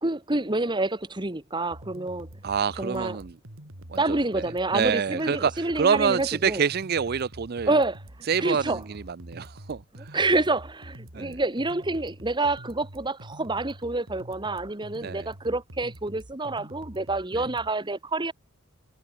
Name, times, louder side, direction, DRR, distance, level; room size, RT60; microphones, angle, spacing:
voice 1, 0.0-2.3 2.8-3.2 4.0-6.6 7.7-8.0 8.4-8.8 10.1-18.3, right 2 dB, 20° right, 1.5 m, -27 dB
sound 1, 1.7-17.7, right 1 dB, 70° right, 4.8 m, -45 dB
voice 2, 2.4-3.3 3.9-4.2 4.7-7.7 8.3-10.2 11.1-11.4 15.0-15.3 17.3-17.4, right 6 dB, 45° right, 0.5 m, -27 dB
head